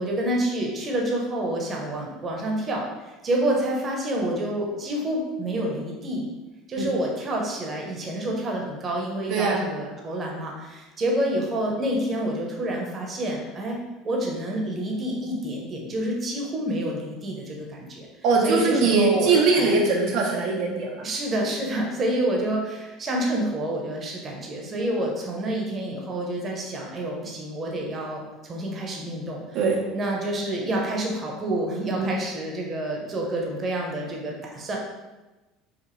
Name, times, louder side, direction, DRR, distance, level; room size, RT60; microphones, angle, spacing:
voice 1, 0.0-6.3 6.7-13.8 14.0-18.1 18.4-19.8 21.0-29.4 29.9-34.8, right 1 dB, 30° right, -1 dB, 0.8 m, -28 dB
voice 2, 9.3-9.7 18.2-21.0 29.5-29.9 31.9-32.1, right 4 dB, 60° right, -1 dB, 0.6 m, -21 dB
4.9 x 2.5 x 3.1 m, 1.1 s
cardioid pair, 140°, 0 cm